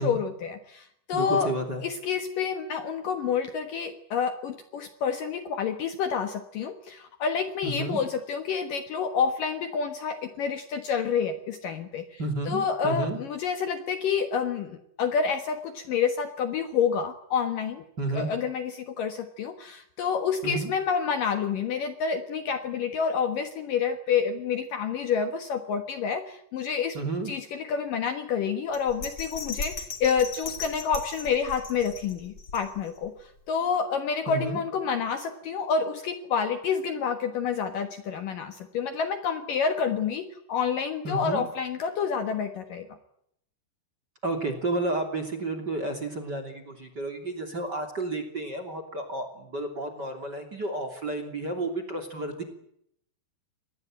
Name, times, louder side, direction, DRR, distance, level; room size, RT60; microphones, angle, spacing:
voice 1, 0.0-1.5 1.8-12.2 12.5-17.8 18.1-27.0 27.3-42.9, left 6 dB, 60° left, 8 dB, 2.6 m, -28 dB
voice 2, 1.1-1.8 7.6-8.0 12.2-13.2 18.0-18.3 20.4-20.7 26.9-27.3 34.3-34.6 41.0-41.5 44.2-52.4, right 2 dB, 25° right, 8 dB, 2.9 m, -31 dB
Bell, 28.7-33.1 33.5-33.6, left 4 dB, 30° left, 3.2 m, -38 dB
26.0 x 20.0 x 9.0 m, 0.73 s
omnidirectional pair, 5.1 m